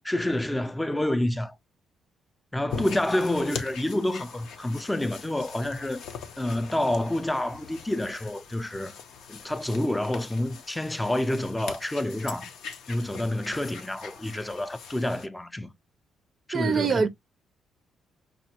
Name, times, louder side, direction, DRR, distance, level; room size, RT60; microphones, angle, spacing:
voice 1, 0.1-1.6 2.5-6.0 6.4-9.0 9.3-12.5 12.9-15.7 16.5-17.1, left 1 dB, 10° left, 0.4 m, -28 dB
sound 1, 2.7-15.3, left 6 dB, 80° left, 0.6 m, -42 dB
voice 2, 16.5-17.1, right 5 dB, 50° right, 0.4 m, -23 dB
5.1 x 2.1 x 2.8 m
cardioid pair, 90°, 0 cm